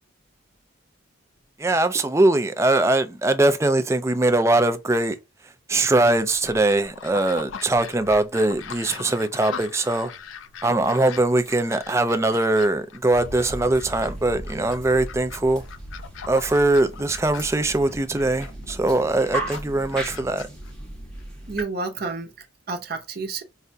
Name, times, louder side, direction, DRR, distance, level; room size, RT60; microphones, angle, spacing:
voice 1, 1.6-5.2 5.7-10.1 10.6-15.6 16.3-20.5, right 2 dB, 15° right, 0.4 m, -21 dB
sound 1, 6.1-21.2, left 6 dB, 70° left, 0.4 m, -41 dB
sound 2, 13.1-21.6, right 1 dB, 5° left, 0.8 m, -36 dB
voice 2, 21.5-23.4, right 3 dB, 50° right, 0.7 m, -30 dB
4.8 x 2.2 x 2.6 m
head